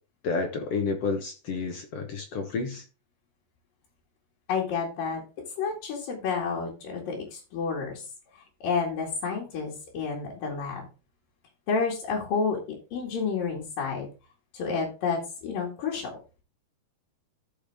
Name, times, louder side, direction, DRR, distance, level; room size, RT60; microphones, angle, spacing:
voice 1, 0.2-2.8, left 4 dB, 60° left, 1.7 m, -30 dB
voice 2, 4.5-5.2 5.6-8.0 8.6-10.9 11.7-14.1 14.5-16.2, left 5 dB, 90° left, 4.0 m, -30 dB
14.5 x 5.2 x 3.5 m
omnidirectional pair, 3.8 m